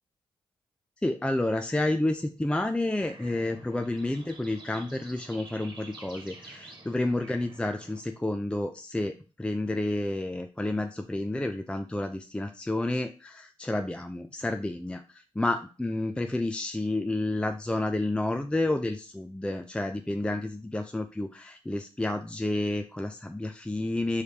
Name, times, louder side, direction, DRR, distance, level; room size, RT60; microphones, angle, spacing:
voice 1, 1.0-9.1 9.4-24.2, left 2 dB, 10° left, 6 dB, 0.4 m, -30 dB
sound 1, 3.0-8.0, right 2 dB, 40° right, 1.4 m, -49 dB
4.8 x 3.2 x 2.8 m, 0.35 s
cardioid pair, 50°, 11 cm